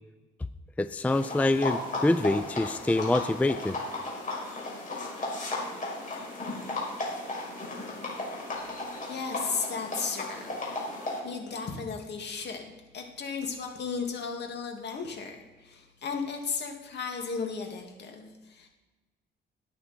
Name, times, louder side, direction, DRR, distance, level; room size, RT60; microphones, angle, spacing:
voice 1, 0.8-3.8, left 2 dB, 5° left, 13 dB, 0.4 m, -25 dB
sound 1, 1.1-11.2, left 2 dB, 40° left, 5.6 m, -35 dB
voice 2, 9.0-10.8 11.2-18.7, left 5 dB, 60° left, 2 dB, 2.4 m, -35 dB
18.0 x 9.2 x 4.4 m, 1.1 s
cardioid pair, 90°, 20 cm